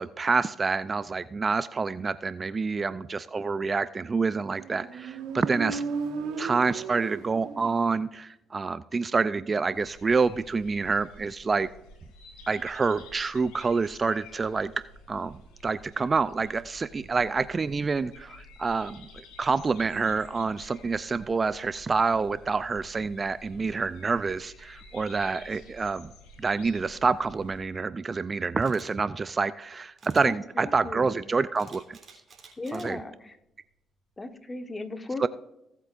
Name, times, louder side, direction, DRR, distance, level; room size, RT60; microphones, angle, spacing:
voice 1, 0.0-5.8 6.4-11.7 12.5-14.7 15.1-26.1 26.4-32.0 32.7-33.0 35.2-35.3, right 4 dB, 35° right, 15 dB, 0.4 m, -27 dB
Motorcycle, 4.3-8.0, right 4 dB, 80° right, 1.5 m, -35 dB
sound 1, 9.7-27.6, left 2 dB, 85° left, 3.2 m, -51 dB
Camera, 28.6-28.9 30.0-30.3 31.6-32.9 33.4-33.6, right 5 dB, 50° right, 3.2 m, -51 dB
voice 2, 30.2-31.2 32.6-33.4 34.2-35.3, left 2 dB, 25° left, 7 dB, 1.3 m, -37 dB
18.5 x 8.2 x 2.5 m, 0.87 s
supercardioid pair, 65°, 0 cm